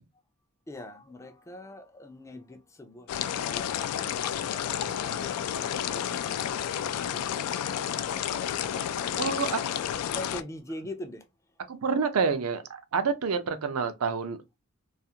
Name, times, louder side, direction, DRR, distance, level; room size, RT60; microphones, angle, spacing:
voice 1, 0.7-3.7 4.2-11.2, left 1 dB, 15° left, 0.3 m, -44 dB
sound 1, 3.1-10.4, left 9 dB, 90° left, 0.3 m, -31 dB
voice 2, 9.2-9.6 11.7-14.6, right 5 dB, 80° right, 0.5 m, -28 dB
2.4 x 2.4 x 2.7 m
head